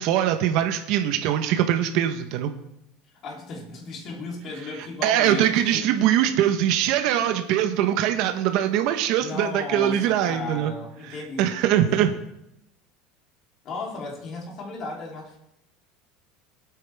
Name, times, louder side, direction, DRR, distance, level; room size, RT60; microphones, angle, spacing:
voice 1, 0.0-2.5 5.0-10.7 11.4-12.2, right 11 dB, 60° right, 6 dB, 1.1 m, -22 dB
voice 2, 3.2-5.8 6.1-6.3 9.2-12.1 13.6-15.4, left 3 dB, 40° left, -1 dB, 3.5 m, -35 dB
19.0 x 9.1 x 3.6 m, 0.82 s
supercardioid pair, 145°, 0 cm